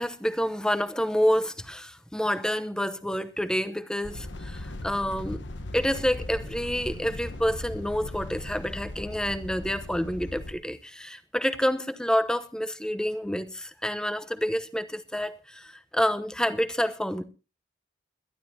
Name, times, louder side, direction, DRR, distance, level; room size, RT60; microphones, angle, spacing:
voice 1, 0.0-5.4 5.7-17.2, equal, 5° left, 0.9 m, -28 dB
sound 1, 4.0-10.5, left 1 dB, 70° left, 1.2 m, -38 dB
22.0 x 12.5 x 2.8 m
head